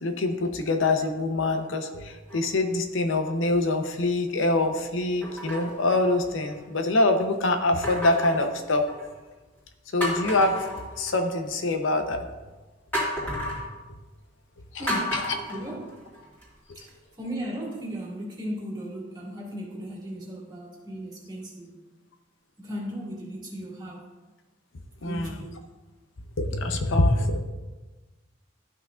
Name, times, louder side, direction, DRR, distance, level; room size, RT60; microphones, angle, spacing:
voice 1, 0.0-8.8 9.9-12.2 14.8-15.2 25.0-25.4 26.4-27.4, left 2 dB, 80° left, 5 dB, 0.8 m, -25 dB
sound 1, 2.3-2.8 3.5-3.6 5.2-6.7 7.8-9.2 9.6-9.7 10.0-11.5 12.9-13.7 14.9-16.4 16.9-17.0, equal, 10° left, 2.5 m, -33 dB
voice 2, 14.8-15.2 15.5-16.0 16.7-21.8 22.6-24.1 25.0-25.6, equal, 20° right, -4 dB, 2.1 m, -36 dB
13.0 x 5.9 x 2.4 m, 1.2 s
head